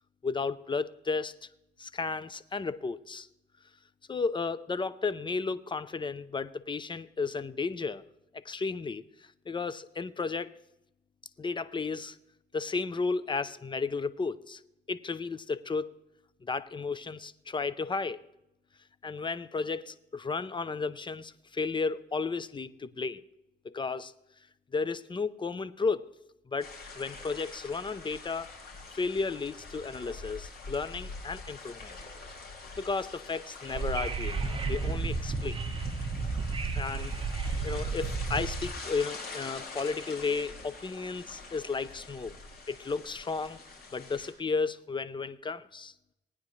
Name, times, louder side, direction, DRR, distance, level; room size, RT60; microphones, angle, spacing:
voice 1, 0.2-1.5 1.8-3.3 4.1-8.0 8.3-9.0 9.5-10.5 11.4-12.2 12.5-14.6 14.9-16.0 16.4-18.2 19.0-23.2 23.6-24.1 24.7-26.1 26.5-28.5 28.9-31.9 32.8-35.6 36.7-42.3 42.7-43.6 43.9-45.9, left 4 dB, 25° left, 16 dB, 0.6 m, -33 dB
sound 1, 26.6-44.3, left 3 dB, 50° left, 4.3 m, -45 dB
Wind / Subway metro underground, 33.7-38.7, right 4 dB, 25° right, 1.3 m, -32 dB
19.5 x 9.6 x 3.2 m, 0.88 s
cardioid pair, 90°, 20 cm